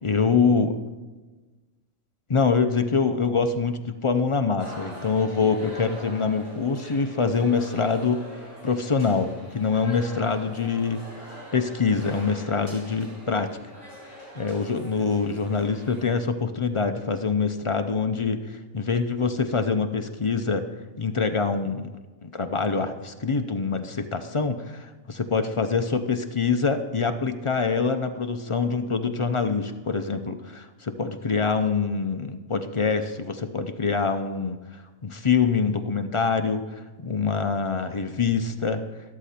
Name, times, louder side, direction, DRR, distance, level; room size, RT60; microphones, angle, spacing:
voice 1, 0.0-0.8 2.3-8.2 8.6-11.0 11.5-13.5 14.4-20.6 21.0-21.9 22.2-34.6 35.0-36.6 37.0-38.8, left 5 dB, 40° left, 7 dB, 0.4 m, -25 dB
sound 1, 4.6-16.0, equal, 50° right, 5.6 m, -43 dB
13.0 x 12.0 x 4.3 m, 1.2 s
omnidirectional pair, 1.3 m